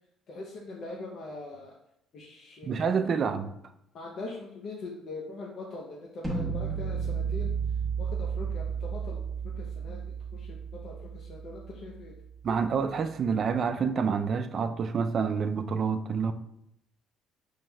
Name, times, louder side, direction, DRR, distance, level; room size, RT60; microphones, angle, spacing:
voice 1, 0.3-1.8 2.1-3.0 3.9-7.5 8.0-10.0 10.3-12.1, left 2 dB, 55° left, 0.6 m, -42 dB
voice 2, 2.6-3.5 12.4-16.3, right 6 dB, 45° right, 0.3 m, -28 dB
sound 1, 6.2-12.2, right 6 dB, 10° right, 1.0 m, -33 dB
5.4 x 3.1 x 2.2 m
cardioid pair, 90°, 0 cm